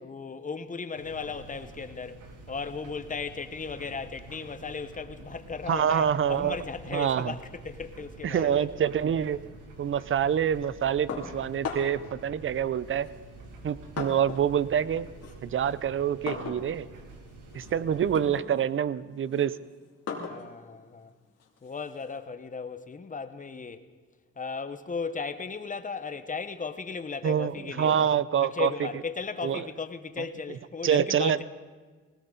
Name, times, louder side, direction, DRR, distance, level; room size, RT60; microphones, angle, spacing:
voice 1, 0.0-8.7 20.2-21.1 21.6-23.8 24.4-28.1 28.4-31.4, left 5 dB, 25° left, 1.1 m, -36 dB
sound 1, 0.9-18.2, right 2 dB, 80° right, 2.4 m, -48 dB
voice 2, 5.7-6.6 6.9-7.3 8.2-9.4 9.8-13.1 13.6-15.1 15.4-16.9 17.5-19.6 27.2-28.7 29.4-29.6 30.8-31.4, right 9 dB, 45° right, 0.6 m, -26 dB
sound 2, 11.1-12.1 13.0-14.6 14.9-22.2, left 5 dB, 55° left, 2.9 m, -40 dB
20.0 x 18.0 x 4.0 m
cardioid pair, 90°, 30 cm